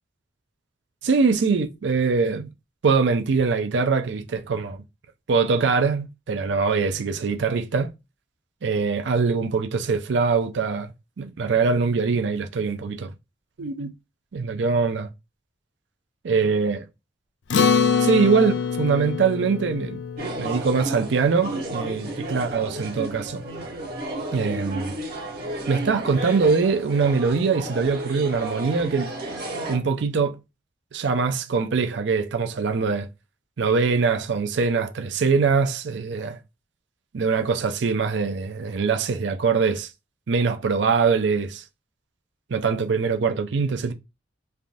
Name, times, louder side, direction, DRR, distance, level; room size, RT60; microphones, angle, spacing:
voice 1, 1.0-2.5 2.8-4.8 5.3-7.9 8.6-10.9 11.2-13.1 13.6-13.9 14.3-15.1 16.2-16.9 18.0-20.0 20.4-23.4 24.3-24.9 25.7-29.1 29.7-30.4 30.9-33.1 33.6-36.4 37.1-39.9 40.3-41.6 42.5-43.9, right 5 dB, 70° right, 0.5 m, -23 dB
Acoustic guitar, 17.5-22.2, left 6 dB, 70° left, 0.4 m, -25 dB
sound 1, 20.2-29.8, right 1 dB, 55° right, 1.0 m, -33 dB
3.3 x 2.5 x 2.6 m
head